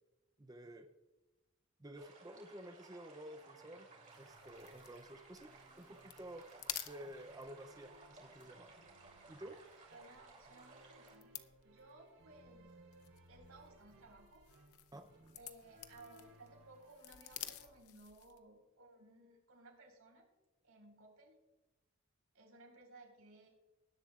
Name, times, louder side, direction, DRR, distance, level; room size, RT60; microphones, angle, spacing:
voice 1, 0.4-0.9 1.8-3.9 4.2-5.5 5.8-6.5 6.9-8.7 9.3-9.6 14.9-15.4, right 1 dB, 15° right, 6 dB, 0.5 m, -52 dB
sound 1, 2.0-11.2, right 3 dB, 35° right, 2.9 m, -60 dB
sound 2, 3.4-17.7, right 2 dB, 65° right, 3.7 m, -65 dB
sound 3, 4.1-18.5, left 12 dB, 90° left, 0.7 m, -53 dB
voice 2, 9.9-12.8 13.3-14.4 15.3-20.2 20.6-21.4 22.3-23.5, right 2 dB, 85° right, 1 dB, 4.6 m, -60 dB
19.5 x 11.0 x 2.4 m, 1.1 s
head